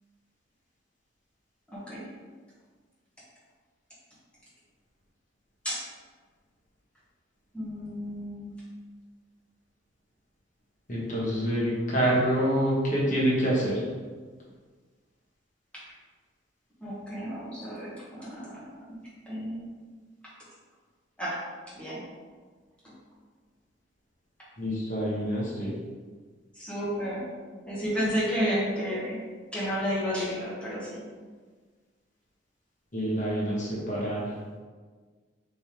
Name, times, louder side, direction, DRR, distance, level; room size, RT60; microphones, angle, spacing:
voice 1, 1.7-2.0 5.6-5.8 7.5-8.5 16.8-18.6 19.3-19.7 21.2-21.4 21.7-22.0 22.8-23.0 26.5-27.3 27.7-29.2 29.5-31.0, equal, 5° left, -9 dB, 1.0 m, -31 dB
voice 2, 10.9-13.9 24.6-25.8 32.9-34.4, equal, 40° left, -5 dB, 1.3 m, -27 dB
5.3 x 3.4 x 2.9 m, 1.5 s
head